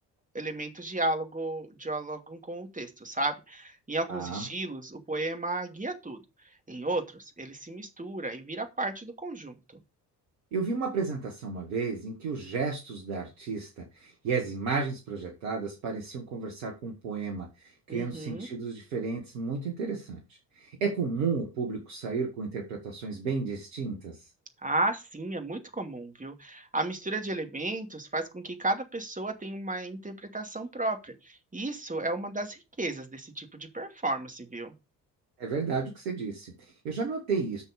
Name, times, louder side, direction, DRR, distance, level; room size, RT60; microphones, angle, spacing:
voice 1, 0.3-6.2 6.7-9.6 17.9-18.5 24.6-34.7, right 2 dB, 15° right, 5 dB, 2.6 m, -33 dB
voice 2, 4.1-4.4 10.5-20.2 20.6-24.2 35.4-37.6, right 4 dB, 70° right, 1 dB, 1.9 m, -33 dB
10.5 x 6.3 x 5.2 m, 0.27 s
figure-of-eight pair, 45°, 48 cm